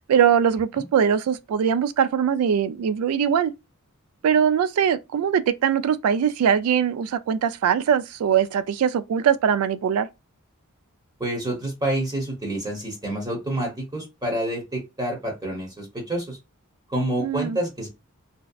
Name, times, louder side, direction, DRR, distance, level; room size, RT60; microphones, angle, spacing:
voice 1, 0.1-3.5 4.2-10.1 17.2-17.6, right 8 dB, 80° right, 0.3 m, -21 dB
voice 2, 11.2-16.4 16.9-17.9, right 1 dB, 20° right, 0.8 m, -28 dB
2.6 x 2.1 x 2.3 m
head